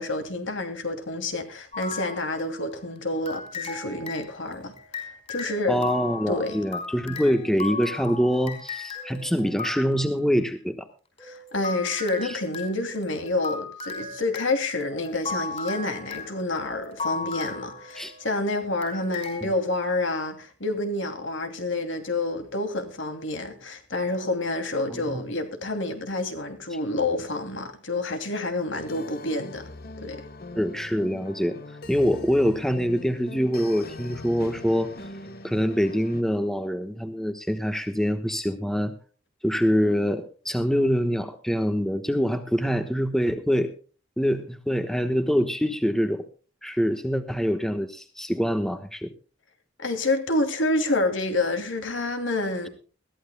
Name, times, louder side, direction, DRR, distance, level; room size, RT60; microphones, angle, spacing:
voice 1, 0.0-5.9 6.3-6.6 11.2-29.7 30.0-30.2 49.8-52.7, left 2 dB, 70° left, 2.7 m, -28 dB
sound 1, 1.7-2.8 3.3-10.2 11.2-18.4 18.8-19.4, left 4 dB, 30° left, 5.1 m, -36 dB
voice 2, 5.7-10.9 12.2-12.3 18.0-18.1 24.9-25.2 30.5-31.6 31.9-34.9 35.4-38.9 39.4-43.7 44.2-46.2 46.6-49.1, equal, ahead, 1.1 m, -25 dB
sound 2, 28.7-36.2, left 1 dB, 50° left, 1.4 m, -41 dB
21.5 x 14.5 x 2.2 m
head